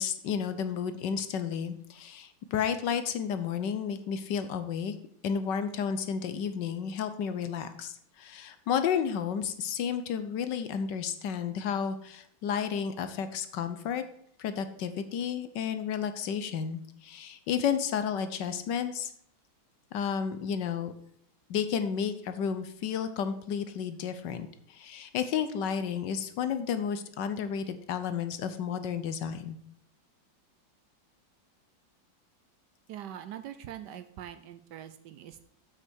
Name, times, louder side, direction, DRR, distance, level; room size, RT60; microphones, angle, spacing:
voice 1, 0.0-4.9 5.2-14.0 14.4-19.1 19.9-20.9 21.5-29.6, left 7 dB, 70° left, 10 dB, 1.3 m, -32 dB
voice 2, 32.9-35.4, right 10 dB, 70° right, 11 dB, 1.1 m, -43 dB
7.6 x 6.3 x 6.3 m, 0.67 s
omnidirectional pair, 2.1 m